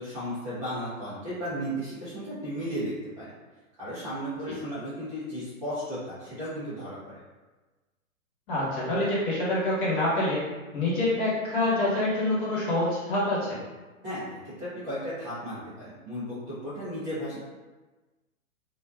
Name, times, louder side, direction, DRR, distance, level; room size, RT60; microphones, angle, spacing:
voice 1, 0.0-3.3 3.8-7.2 14.0-17.4, equal, 15° right, -14 dB, 0.4 m, -35 dB
voice 2, 8.5-10.4 10.7-13.6, left 1 dB, 35° left, -7 dB, 1.1 m, -26 dB
2.6 x 2.3 x 2.3 m, 1.2 s
hypercardioid pair, 135°, 43 cm